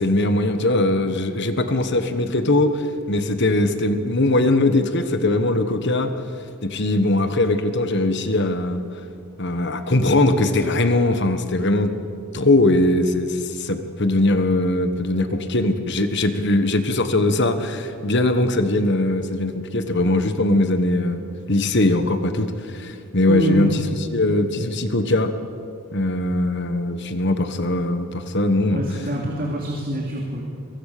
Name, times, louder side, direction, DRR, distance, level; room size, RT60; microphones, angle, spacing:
voice 1, 0.0-6.1 6.6-8.8 9.4-11.9 12.3-23.8 24.1-25.3 25.9-28.8, left 2 dB, 50° left, 9 dB, 1.4 m, -20 dB
voice 2, 23.3-23.8 28.7-30.4, right 1 dB, 40° right, -1 dB, 2.7 m, -25 dB
23.5 x 23.0 x 6.8 m, 2.4 s
head